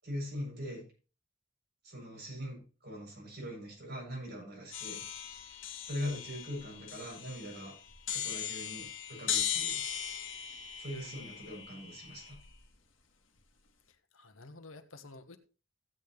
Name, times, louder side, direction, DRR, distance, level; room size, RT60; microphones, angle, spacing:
voice 1, 0.0-0.8 1.8-5.0 5.8-7.8 8.1-9.8 10.8-12.4, equal, 55° right, -2 dB, 7.7 m, -41 dB
sound 1, 4.7-12.7, left 9 dB, 70° left, 1.7 m, -38 dB
voice 2, 10.9-11.3 13.9-15.4, left 2 dB, 85° left, 9 dB, 1.2 m, -52 dB
15.0 x 8.8 x 3.2 m, 0.35 s
head